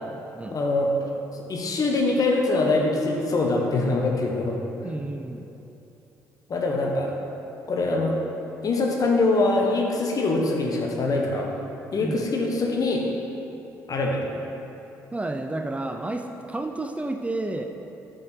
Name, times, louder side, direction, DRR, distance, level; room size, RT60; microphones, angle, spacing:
voice 1, 0.5-0.9 1.5-4.6 6.5-7.1 7.7-8.1 8.6-11.6 11.9-13.1 13.9-14.4, left 2 dB, 50° left, 0 dB, 1.2 m, -23 dB
voice 2, 4.8-5.5 12.0-12.3 15.1-17.6, right 2 dB, 15° right, 5 dB, 0.5 m, -31 dB
8.2 x 5.3 x 4.4 m, 2.9 s
hypercardioid pair, 55°, 8 cm